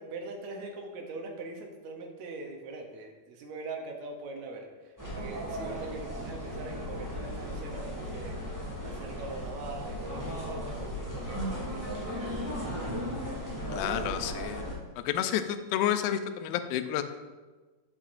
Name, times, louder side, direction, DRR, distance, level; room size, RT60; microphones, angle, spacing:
voice 1, 0.0-11.4 11.7-13.1, right 3 dB, 80° right, 2 dB, 1.7 m, -42 dB
sound 1, 5.0-14.7, equal, 10° right, 1.3 m, -36 dB
voice 2, 13.7-14.6 15.1-17.0, left 10 dB, 90° left, 10 dB, 2.3 m, -30 dB
8.4 x 7.5 x 2.5 m, 1.3 s
omnidirectional pair, 4.0 m